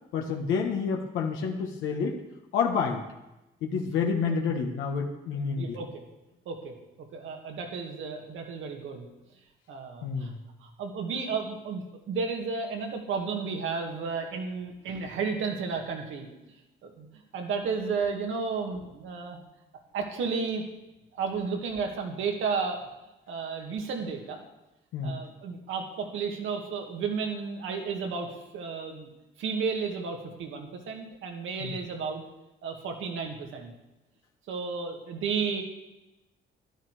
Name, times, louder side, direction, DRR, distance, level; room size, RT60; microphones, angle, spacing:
voice 1, 0.1-2.2 2.5-3.0 3.6-5.8 10.0-10.4 24.9-25.2 31.6-31.8, left 5 dB, 85° left, 1 dB, 1.5 m, -29 dB
voice 2, 5.6-6.0 6.5-6.7 7.1-9.1 9.7-10.3 10.6-16.3 16.8-17.1 17.3-19.4 19.9-20.6 21.1-22.8 23.3-24.4 25.0-29.1 29.4-32.2 32.6-33.7 34.5-35.6, right 5 dB, 80° right, 3 dB, 2.2 m, -32 dB
12.5 x 11.0 x 4.9 m, 0.96 s
cardioid pair, 90°, 20 cm